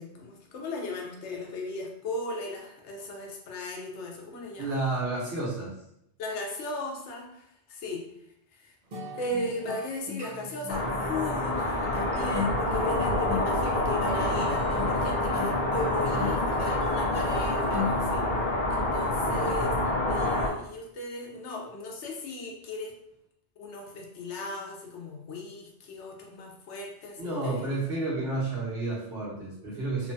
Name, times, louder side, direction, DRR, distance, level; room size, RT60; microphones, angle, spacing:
voice 1, 0.0-4.8 6.2-8.1 8.5-8.7 9.1-18.3 18.7-19.7 20.1-22.9 23.6-27.7 28.3-28.4, left 2 dB, 85° left, 0 dB, 0.9 m, -37 dB
voice 2, 4.6-5.7 19.3-19.5 27.2-30.1, right 2 dB, 65° right, -6 dB, 1.2 m, -31 dB
sound 1, 8.9-18.6, left 3 dB, 50° right, 0.6 m, -38 dB
sound 2, 10.7-20.5, left 1 dB, 55° left, 0.6 m, -27 dB
3.0 x 2.2 x 2.6 m, 0.78 s
omnidirectional pair, 1.1 m